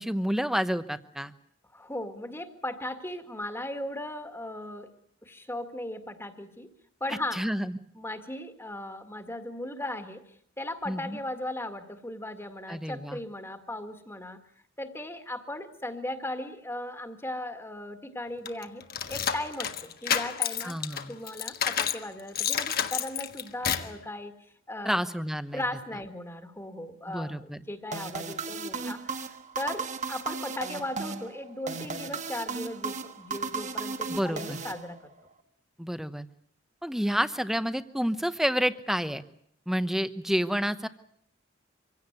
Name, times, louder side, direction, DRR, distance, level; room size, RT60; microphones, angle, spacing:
voice 1, 0.0-1.3 7.1-7.8 10.9-11.2 12.7-13.2 20.6-21.2 24.8-25.6 27.1-27.6 34.1-34.6 35.8-36.3 36.8-39.2 39.7-40.9, equal, ahead, 12 dB, 1.0 m, -29 dB
voice 2, 1.7-4.9 5.2-6.7 7.0-7.4 8.0-10.2 10.6-14.4 14.8-20.7 21.1-24.3 24.7-25.0 25.5-29.0 29.6-35.1, left 1 dB, 15° left, 7 dB, 2.0 m, -37 dB
sound 1, 18.5-22.0 22.4-24.0, left 8 dB, 50° left, 1.5 m, -29 dB
sound 2, 27.9-35.3, right 4 dB, 40° right, 1.5 m, -35 dB
25.0 x 17.0 x 9.5 m, 0.67 s
head